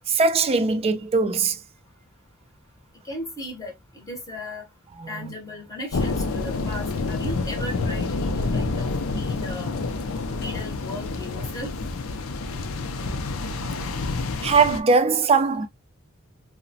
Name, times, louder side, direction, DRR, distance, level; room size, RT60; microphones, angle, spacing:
voice 1, 0.1-1.6 5.0-5.3 14.4-15.7, right 4 dB, 30° right, 0.3 m, -20 dB
voice 2, 3.0-4.7 5.1-9.8 10.3-11.7, left 1 dB, 15° left, 0.7 m, -36 dB
sound 1, 5.9-14.8, left 3 dB, 80° left, 0.5 m, -28 dB
2.9 x 2.0 x 2.6 m
head